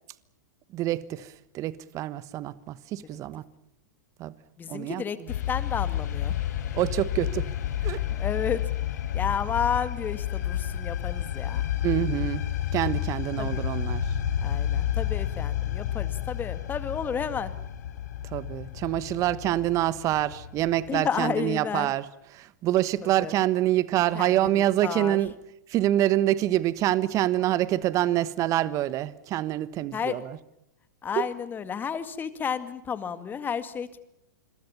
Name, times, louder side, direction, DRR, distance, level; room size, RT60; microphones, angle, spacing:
voice 1, 0.7-3.4 4.2-4.3 4.7-5.0 6.7-7.5 7.8-8.0 11.8-12.4 12.7-14.0 18.3-22.1 22.3-25.3 25.7-30.4 31.2-31.3, right 14 dB, 35° right, 1.3 m, -26 dB
voice 2, 4.6-6.3 8.1-8.6 9.1-11.6 13.4-13.7 14.4-17.5 20.9-21.9 23.0-23.4 24.1-25.2 29.9-30.2 31.0-34.0, left 7 dB, 20° left, 2.0 m, -32 dB
sound 1, 5.3-21.0, left 11 dB, 65° left, 4.8 m, -30 dB
27.5 x 22.0 x 7.1 m
hypercardioid pair, 110°, 10 cm